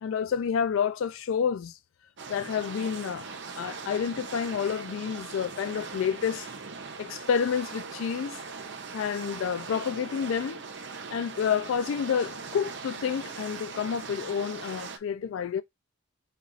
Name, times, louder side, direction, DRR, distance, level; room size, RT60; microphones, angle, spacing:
voice 1, 0.0-1.8 2.3-6.5 7.0-8.4 8.9-10.6 11.1-15.6, left 7 dB, 75° left, 0.3 m, -29 dB
sound 1, 2.2-15.0, right 4 dB, 60° right, 0.7 m, -40 dB
4.3 x 2.4 x 3.8 m
head